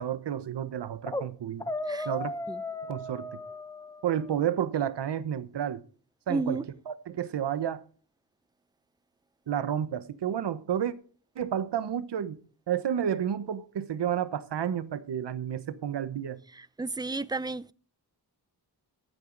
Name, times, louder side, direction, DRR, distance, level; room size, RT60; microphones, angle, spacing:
voice 1, 0.0-1.7 2.0-2.3 2.9-3.3 4.0-5.8 6.3-6.6 6.9-7.8 9.5-10.9 11.4-12.4 12.7-16.4, right 9 dB, 90° right, 1.1 m, -31 dB
sound 1, 1.1-1.3 1.6-4.4, left 2 dB, 10° left, 0.9 m, -36 dB
voice 2, 6.3-6.7 16.5-17.7, right 3 dB, 10° right, 0.4 m, -32 dB
15.0 x 9.1 x 4.0 m
wide cardioid pair, 95°, 40 cm